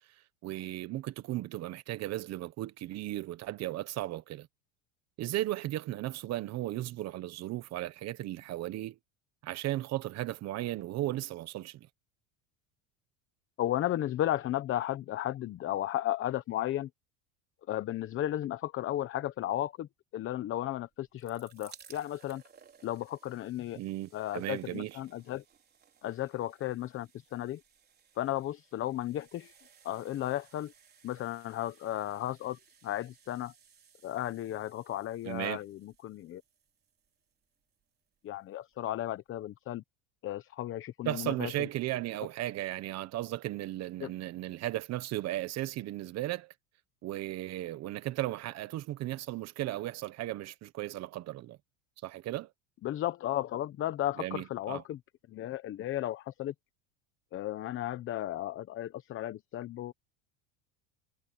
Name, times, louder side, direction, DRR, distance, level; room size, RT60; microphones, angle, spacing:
voice 1, 0.4-4.5 5.2-9.0 9.4-11.9 23.8-25.0 35.2-35.6 41.0-46.5 47.0-51.6 52.0-52.5 54.2-54.8, right 15 dB, 45° right, 1.2 m, -36 dB
voice 2, 13.6-16.9 17.7-19.9 20.1-22.4 22.8-23.8 24.1-25.4 26.0-27.6 28.2-29.5 29.8-30.7 31.0-33.5 34.0-36.4 38.2-39.8 40.2-41.7 44.0-44.1 52.8-55.0 55.3-56.5 57.3-59.9, left 13 dB, 35° left, 0.9 m, -34 dB
sound 1, 20.9-38.0 38.7-38.8 39.0-39.1, right 7 dB, 25° right, 4.1 m, -60 dB
cardioid pair, 145°, 38 cm